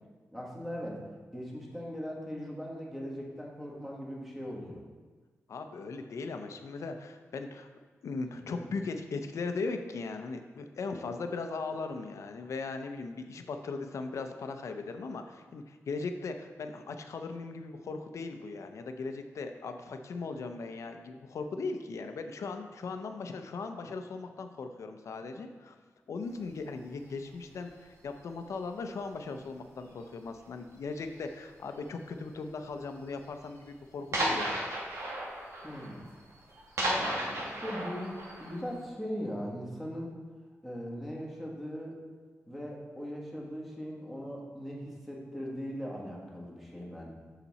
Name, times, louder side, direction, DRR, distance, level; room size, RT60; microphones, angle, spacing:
voice 1, 0.3-1.0 1.3-4.8 35.6-36.1 36.9-40.1 40.6-42.0 42.5-47.1, equal, 5° right, -3 dB, 1.5 m, -39 dB
voice 2, 5.5-7.7 8.0-25.8 26.1-34.6, left 4 dB, 80° left, 6 dB, 0.6 m, -38 dB
sound 1, 26.5-26.7 27.5-27.9 28.1-28.6 29.0-29.2 29.7-29.8 30.0-30.1 30.9-31.4 32.2-32.3 32.6-32.7 33.1-33.2 33.5-33.6 34.1-38.8, right 1 dB, 70° right, 1.4 m, -34 dB
7.1 x 5.9 x 4.1 m, 1.4 s
wide cardioid pair, 135°, 5 cm